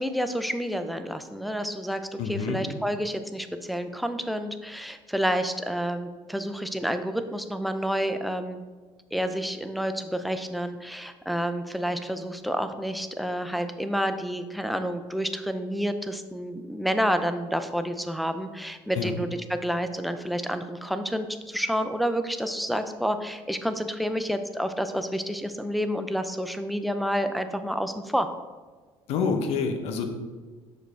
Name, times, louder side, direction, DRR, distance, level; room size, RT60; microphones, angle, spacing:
voice 1, 0.0-8.6 9.1-28.3, equal, ahead, 8 dB, 0.5 m, -29 dB
voice 2, 2.2-2.6 18.9-19.1 29.1-30.1, left 5 dB, 75° left, 5 dB, 0.9 m, -27 dB
6.6 x 5.1 x 3.3 m, 1.4 s
cardioid pair, 100°, 11 cm